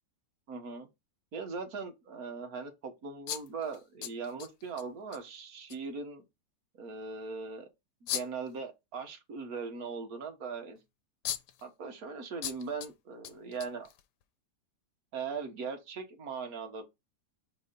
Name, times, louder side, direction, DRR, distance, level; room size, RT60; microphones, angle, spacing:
voice 1, 0.5-0.9 1.3-6.2 6.8-7.7 8.0-10.8 11.6-13.9 15.1-16.8, right 5 dB, 60° right, 1.8 m, -40 dB
sound 1, 3.3-4.8 5.1-5.2 5.7-5.8 8.1-8.5 10.8-10.9 11.2-11.6 12.4-12.9 13.2-14.2, left 11 dB, 85° left, 1.3 m, -38 dB
5.0 x 4.1 x 5.3 m
omnidirectional pair, 1.8 m